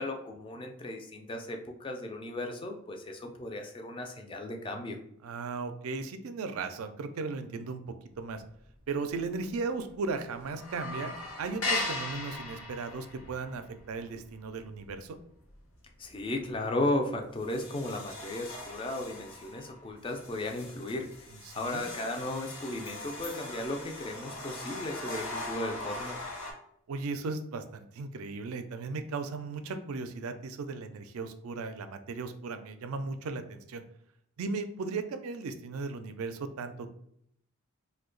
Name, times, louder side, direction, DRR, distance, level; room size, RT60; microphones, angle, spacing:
voice 1, 0.0-5.0 16.0-26.3, left 2 dB, 25° left, 3 dB, 0.3 m, -35 dB
voice 2, 5.2-7.8 8.2-8.4 8.9-11.1 11.4-15.2 21.5-21.9 26.9-33.8 34.4-37.0, right 4 dB, 80° right, 9 dB, 0.4 m, -36 dB
sound 1, 8.3-8.8 9.1-9.2 9.5-10.1 10.4-15.7 16.0-16.3 16.8-16.9 17.4-26.5, left 2 dB, 70° left, 0.8 m, -39 dB
2.8 x 2.2 x 3.7 m, 0.72 s
head